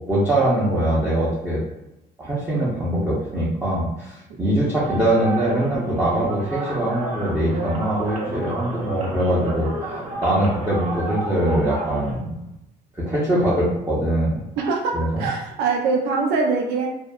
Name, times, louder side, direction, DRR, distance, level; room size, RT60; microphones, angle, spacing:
voice 1, 0.0-1.6 2.2-12.4 12.9-14.4 14.9-15.3, right 1 dB, 10° right, -8 dB, 0.7 m, -22 dB
sound 1, 4.8-12.1, right 1 dB, 45° right, 0.7 m, -31 dB
voice 2, 14.6-16.9, right 4 dB, 85° right, 0 dB, 0.5 m, -23 dB
2.6 x 2.3 x 2.2 m, 0.91 s
cardioid pair, 110°, 17 cm